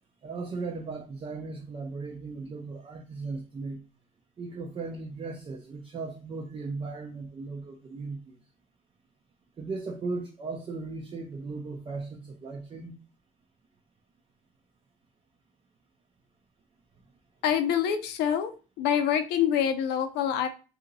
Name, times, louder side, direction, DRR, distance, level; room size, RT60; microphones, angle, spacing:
voice 1, 0.2-3.8 4.4-8.4 9.6-12.9, right 3 dB, 30° right, 0.5 m, -37 dB
voice 2, 17.4-18.5 18.8-20.5, left 9 dB, 85° left, 0.6 m, -26 dB
2.8 x 2.8 x 3.9 m
cardioid pair, 110°, 17 cm